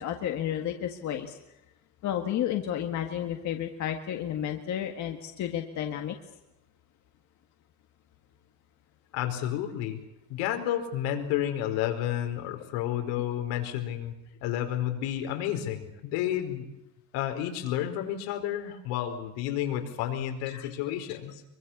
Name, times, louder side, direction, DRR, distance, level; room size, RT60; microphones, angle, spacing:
voice 1, 0.0-1.4 2.0-6.1 20.5-20.7, left 10 dB, 40° left, 4 dB, 1.8 m, -32 dB
voice 2, 9.1-10.0 10.3-14.1 14.4-16.7 17.1-21.4, left 11 dB, 80° left, 5 dB, 4.8 m, -31 dB
25.0 x 23.5 x 7.2 m, 0.91 s
cardioid pair, 175°, 45 cm